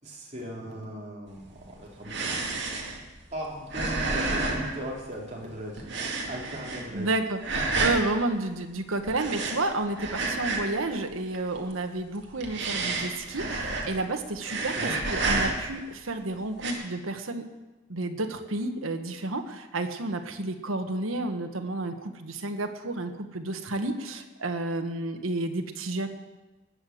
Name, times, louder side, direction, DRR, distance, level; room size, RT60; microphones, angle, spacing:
voice 1, 0.0-2.4 3.3-5.9 6.3-7.1 7.5-7.6 14.7-15.0, equal, 35° right, -4 dB, 3.8 m, -38 dB
sound 1, 1.4-5.4 5.8-7.1 7.4-8.1 9.1-10.9 11.1-11.7 12.2-14.1 14.4-15.8 16.5-16.7, right 3 dB, 60° right, 2.3 m, -30 dB
voice 2, 6.9-7.4 7.8-17.4 17.9-26.1, right 2 dB, 85° right, 6 dB, 1.4 m, -31 dB
19.5 x 6.8 x 7.8 m, 1.1 s
head